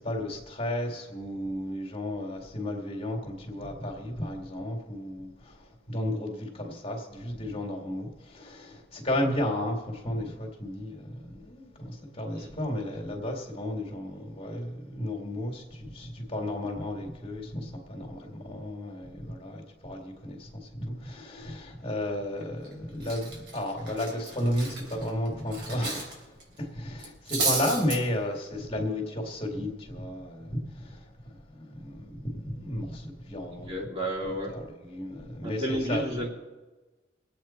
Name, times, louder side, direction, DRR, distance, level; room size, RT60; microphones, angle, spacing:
voice 1, 0.0-36.0, left 1 dB, 35° left, 1 dB, 2.2 m, -33 dB
Cutlery silverware, 22.4-22.7 23.0-26.1 26.4-26.6 27.0-28.0, right 3 dB, 70° right, 3.6 m, -32 dB
voice 2, 33.5-34.5 35.4-36.3, equal, 35° right, -2 dB, 2.7 m, -32 dB
22.5 x 8.5 x 4.4 m, 1.2 s
head